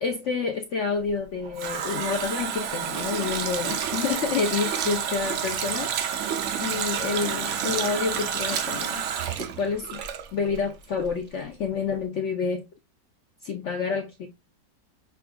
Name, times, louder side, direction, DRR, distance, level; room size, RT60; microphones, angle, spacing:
voice 1, 0.0-5.9 6.6-9.0 9.4-10.0 10.3-12.6 13.4-14.3, left 5 dB, 70° left, 0.7 m, -28 dB
Water tap faucet, 1.1-10.7 11.0-11.1, right 8 dB, 85° right, 0.6 m, -29 dB
6.6 x 2.4 x 2.2 m
omnidirectional pair, 1.9 m